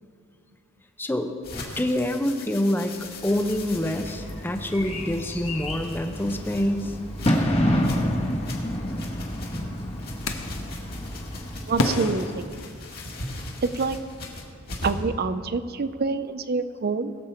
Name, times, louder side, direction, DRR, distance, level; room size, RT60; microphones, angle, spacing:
voice 1, 1.0-1.3 1.8-2.9 3.2-6.9, left 1 dB, 10° left, 6 dB, 0.8 m, -26 dB
sound 1, 1.4-15.1, left 2 dB, 45° left, 2.2 m, -40 dB
Bird / Fireworks, 3.2-12.4, equal, 30° left, 1.4 m, -29 dB
sound 2, 10.2-10.7 11.8-13.3, left 2 dB, 70° left, 1.1 m, -29 dB
voice 2, 11.7-12.6 13.6-14.0 14.8-17.1, right 4 dB, 45° right, 12 dB, 0.6 m, -26 dB
21.0 x 7.4 x 4.4 m, 2.3 s
head